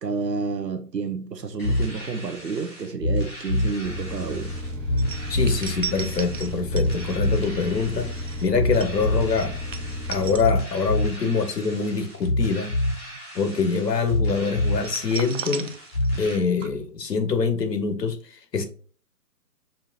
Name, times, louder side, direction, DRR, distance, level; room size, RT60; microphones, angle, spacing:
voice 1, 0.0-4.5, right 4 dB, 90° right, 0.8 m, -30 dB
sound 1, 1.6-16.3, left 1 dB, 35° left, 1.9 m, -28 dB
sound 2, 3.8-10.4, left 1 dB, 30° right, 1.2 m, -33 dB
sound 3, 5.0-11.1 11.4-11.6 14.8-16.3 16.6-16.7, right 8 dB, 55° right, 0.5 m, -37 dB
voice 2, 5.3-8.1 8.4-9.6 10.1-12.7 13.3-15.7 16.2-18.6, left 5 dB, 80° left, 1.0 m, -24 dB
5.4 x 2.5 x 2.8 m
figure-of-eight pair, 145°, 48 cm